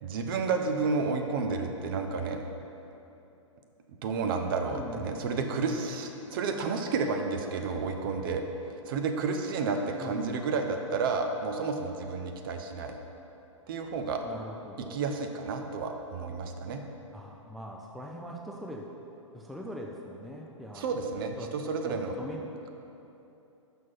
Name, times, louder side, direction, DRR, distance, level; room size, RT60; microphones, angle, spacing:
voice 1, 0.0-2.4 4.0-8.4 8.9-12.9 13.7-14.2 14.9-16.8 20.7-22.2, right 4 dB, 45° right, 4 dB, 0.7 m, -31 dB
voice 2, 4.7-5.1 10.0-10.5 14.2-15.0 17.1-18.9 19.3-20.9 21.4-21.5 21.8-22.5, equal, ahead, -2 dB, 0.3 m, -42 dB
6.1 x 5.6 x 5.8 m, 2.9 s
figure-of-eight pair, 110°, 17 cm